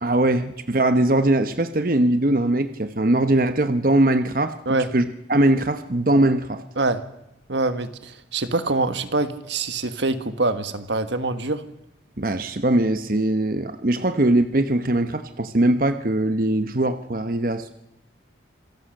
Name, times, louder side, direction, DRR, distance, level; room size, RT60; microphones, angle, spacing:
voice 1, 0.0-6.6 12.2-17.7, right 1 dB, 50° right, 9 dB, 1.0 m, -21 dB
voice 2, 7.5-11.6, right 2 dB, 75° right, 10 dB, 1.6 m, -24 dB
27.0 x 16.5 x 6.6 m, 0.88 s
head